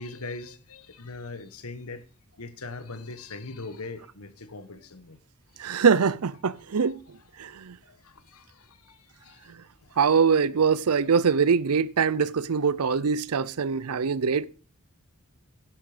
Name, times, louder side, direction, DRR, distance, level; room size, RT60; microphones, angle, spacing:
voice 1, 0.0-2.1 2.3-5.2 5.7-5.9 6.8-7.0 7.8-9.6 9.8-10.0, left 3 dB, 80° left, 1.3 m, -41 dB
voice 2, 5.6-7.0 7.4-7.8 9.5-9.6 10.0-14.5, right 6 dB, 85° right, 0.6 m, -23 dB
11.0 x 9.0 x 5.0 m
head